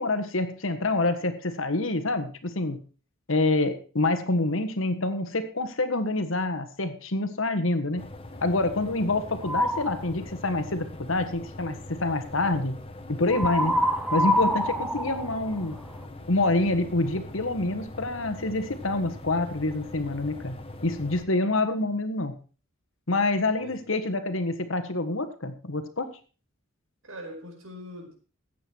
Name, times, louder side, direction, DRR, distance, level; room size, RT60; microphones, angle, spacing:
voice 1, 0.0-2.8 3.3-8.1 8.4-12.7 13.1-13.8 14.1-15.8 16.3-20.5 20.8-22.3 23.1-26.1, left 2 dB, 75° left, 9 dB, 1.6 m, -27 dB
sound 1, 8.0-21.2, left 1 dB, 30° left, 1.2 m, -42 dB
sound 2, 9.4-10.0 13.3-16.1, equal, ahead, 0.9 m, -26 dB
voice 2, 27.0-28.2, equal, 90° right, 2 dB, 5.0 m, -42 dB
14.5 x 9.2 x 4.6 m, 0.38 s
head